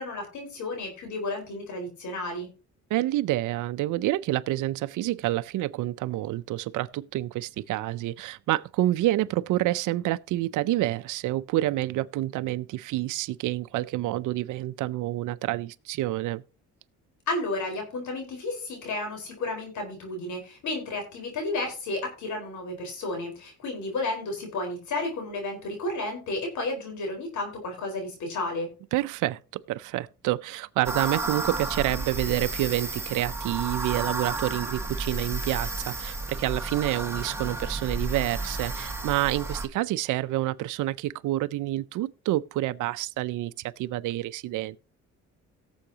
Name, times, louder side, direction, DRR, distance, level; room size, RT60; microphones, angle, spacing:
voice 1, 0.0-2.5 17.3-28.7, left 2 dB, 75° left, 4.4 m, -32 dB
voice 2, 2.9-16.4 28.9-44.8, right 16 dB, 80° right, 0.6 m, -28 dB
sound 1, 30.8-39.7, right 2 dB, 10° right, 1.8 m, -32 dB
17.5 x 7.1 x 2.8 m
cardioid pair, 90°, 30 cm